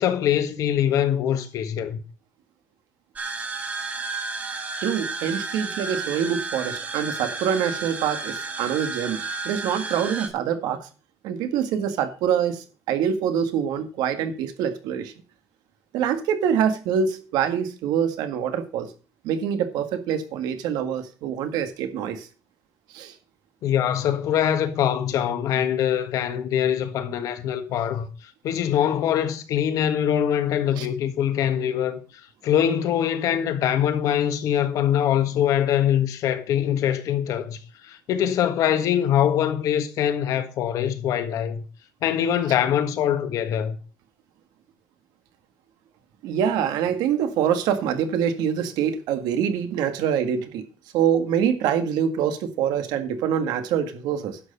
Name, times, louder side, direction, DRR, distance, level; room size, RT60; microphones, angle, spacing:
voice 1, 0.0-2.0 23.6-28.1 28.4-32.0 32.4-41.6 42.0-43.8, left 10 dB, 60° left, 1.5 m, -23 dB
sound 1, 3.1-10.3, right 4 dB, 25° right, 1.6 m, -32 dB
voice 2, 4.8-9.2 9.4-10.9 11.2-15.1 15.9-18.9 19.2-22.3 22.9-23.1 30.8-30.9 46.2-50.6 50.9-54.4, right 8 dB, 85° right, 1.8 m, -25 dB
11.0 x 6.8 x 5.4 m
cardioid pair, 170°, 7 cm